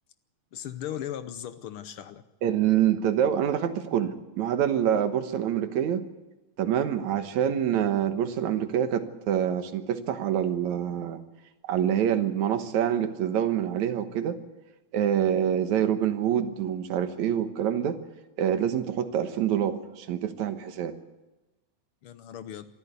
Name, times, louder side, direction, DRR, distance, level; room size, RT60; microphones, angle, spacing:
voice 1, 0.5-2.2 22.0-22.7, left 10 dB, 70° left, 11 dB, 1.3 m, -37 dB
voice 2, 2.4-6.1 6.6-11.2 11.7-14.4 14.9-18.0 18.4-21.0, right 9 dB, 80° right, 9 dB, 2.6 m, -26 dB
24.0 x 14.0 x 8.2 m, 1.1 s
omnidirectional pair, 3.3 m